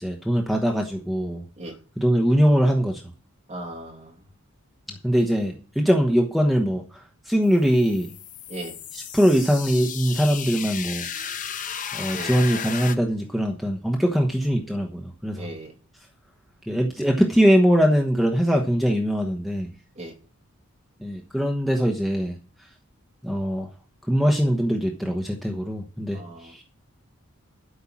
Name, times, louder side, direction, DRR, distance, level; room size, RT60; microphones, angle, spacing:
voice 1, 0.0-1.4 2.0-3.0 4.9-8.1 8.9-11.1 11.9-15.5 16.7-19.7 21.0-22.3 23.2-23.7 24.1-26.6, equal, ahead, 1 dB, 1.1 m, -22 dB
voice 2, 3.5-4.2 8.5-8.8 12.1-12.5 15.3-15.8 19.9-20.2 26.1-26.6, right 1 dB, 30° right, -1 dB, 2.6 m, -37 dB
sound 1, 7.5-13.0, left 8 dB, 35° left, 0.8 m, -34 dB
12.5 x 5.6 x 7.3 m, 0.39 s
head